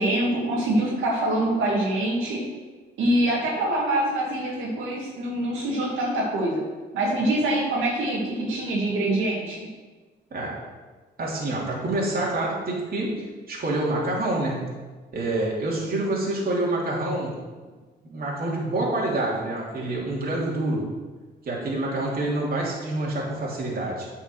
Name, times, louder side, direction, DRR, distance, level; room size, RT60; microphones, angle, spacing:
voice 1, 0.0-2.4 3.0-6.6 6.9-9.6, right 1 dB, 85° right, -4 dB, 2.5 m, -24 dB
voice 2, 10.3-10.6 11.2-14.7 15.1-17.4 18.1-20.9 21.4-24.1, right 2 dB, 50° right, -4 dB, 3.0 m, -27 dB
8.5 x 5.7 x 6.3 m, 1.3 s
cardioid pair, 90°, 20 cm